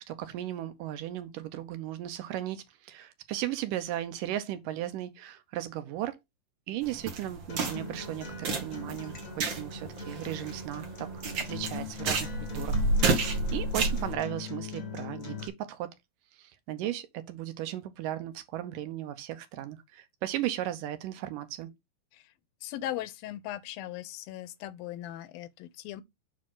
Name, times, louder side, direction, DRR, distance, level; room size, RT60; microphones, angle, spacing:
voice 1, 0.1-6.2 6.7-11.1 11.4-15.9 16.7-21.7, right 13 dB, 75° right, 2.3 m, -36 dB
sound 1, 6.8-14.1, right 3 dB, 55° right, 1.3 m, -31 dB
Acoustic guitar, 7.5-15.5, left 4 dB, 50° left, 0.9 m, -40 dB
voice 2, 22.6-26.0, left 13 dB, 90° left, 2.6 m, -38 dB
7.2 x 5.1 x 3.7 m
omnidirectional pair, 4.1 m